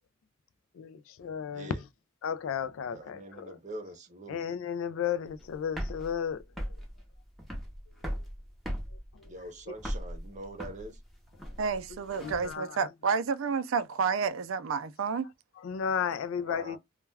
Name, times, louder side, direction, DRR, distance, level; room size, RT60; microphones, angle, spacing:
voice 1, 0.8-1.7 2.2-3.5 4.3-6.4 12.2-12.7 15.6-16.8, left 7 dB, 85° left, 0.3 m, -33 dB
voice 2, 1.5-1.8 2.9-4.5 9.2-11.0 16.3-16.8, right 1 dB, 35° right, 0.7 m, -44 dB
sound 1, 5.3-12.5, equal, ahead, 0.6 m, -38 dB
voice 3, 11.6-15.3, right 5 dB, 85° right, 0.4 m, -30 dB
2.3 x 2.2 x 3.2 m
head